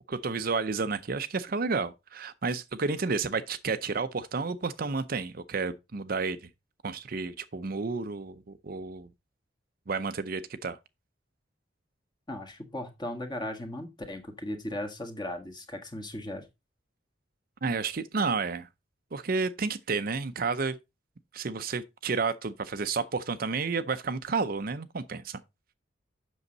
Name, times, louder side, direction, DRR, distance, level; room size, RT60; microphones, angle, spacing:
voice 1, 0.1-6.5 6.8-9.1 9.9-10.8 17.6-18.7 19.1-20.8 21.3-25.4, right 4 dB, 50° right, 0.6 m, -31 dB
voice 2, 12.3-16.4, left 1 dB, 25° left, 1.6 m, -37 dB
8.1 x 6.3 x 4.0 m
head